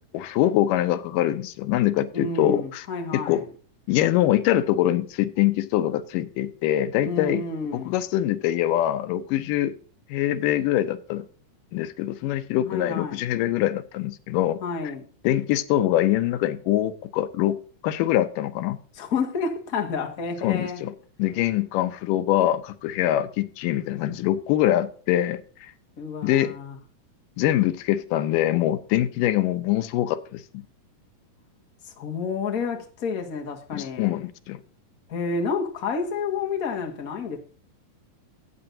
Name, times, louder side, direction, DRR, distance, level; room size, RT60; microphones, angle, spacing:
voice 1, 0.1-2.8 3.1-3.4 3.9-7.4 7.7-9.8 10.1-11.3 11.7-14.6 15.2-17.6 17.8-18.8 20.4-20.9 21.2-25.7 26.2-26.5 27.4-30.6 33.7-34.6, left 13 dB, 90° left, 2.4 m, -24 dB
voice 2, 2.1-3.4 7.0-7.9 12.6-13.2 14.6-15.0 18.9-20.8 26.0-26.8 31.8-34.1 35.1-37.4, left 4 dB, 35° left, 1.6 m, -30 dB
15.0 x 8.7 x 2.7 m
omnidirectional pair, 3.7 m